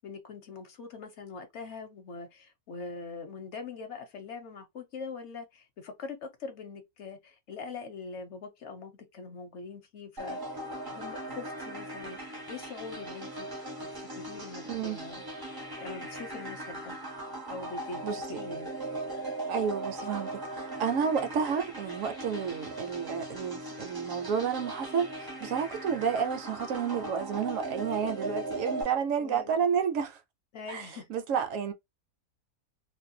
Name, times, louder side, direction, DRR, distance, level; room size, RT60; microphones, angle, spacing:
voice 1, 0.0-10.4 10.8-13.5 13.8-17.0 17.5-18.7 29.2-29.5 30.5-31.1, left 4 dB, 60° left, 0.9 m, -43 dB
sound 1, 10.2-28.8, right 1 dB, 25° right, 0.5 m, -39 dB
voice 2, 19.5-30.2 30.7-31.7, right 7 dB, 70° right, 0.9 m, -31 dB
2.6 x 2.2 x 2.6 m
omnidirectional pair, 1.5 m